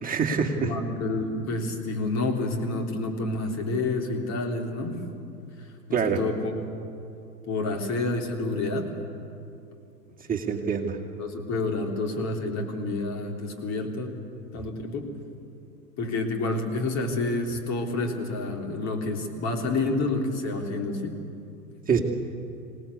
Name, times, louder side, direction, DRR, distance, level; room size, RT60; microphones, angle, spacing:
voice 1, 0.0-0.7 5.9-6.2 10.3-11.0 21.9-22.0, right 6 dB, 15° right, 0 dB, 2.4 m, -25 dB
voice 2, 0.6-5.0 5.9-6.5 7.5-8.9 11.2-14.1 14.5-15.1 16.0-21.2, left 2 dB, 35° left, 3 dB, 3.4 m, -29 dB
26.0 x 18.0 x 8.4 m, 2.7 s
figure-of-eight pair, 90°, 47 cm